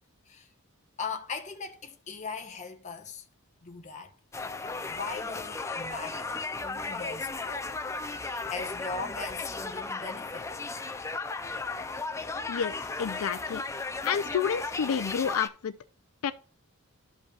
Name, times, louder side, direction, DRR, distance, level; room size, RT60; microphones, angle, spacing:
voice 1, 1.0-3.2 3.6-4.1 4.9-7.8 8.2-10.5, left 4 dB, 30° left, 1.0 m, -39 dB
sound 1, 4.3-15.5, left 3 dB, 15° left, 0.3 m, -35 dB
voice 2, 12.5-13.6 14.0-15.8 16.2-16.3, left 7 dB, 80° left, 0.4 m, -29 dB
13.0 x 5.3 x 2.3 m
head